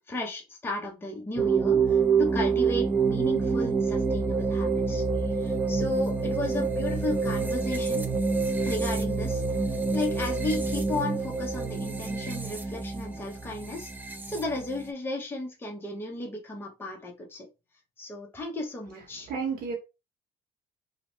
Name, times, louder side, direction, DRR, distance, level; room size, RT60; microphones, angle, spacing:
voice 1, 0.1-8.0 8.7-9.4 9.9-13.9 14.3-17.5 18.0-19.3, left 2 dB, 15° left, 0.7 m, -34 dB
sound 1, 1.4-14.9, right 4 dB, 10° right, 0.4 m, -27 dB
voice 2, 18.9-19.7, right 5 dB, 70° right, 0.9 m, -33 dB
2.8 x 2.1 x 3.0 m
cardioid pair, 110°, 16 cm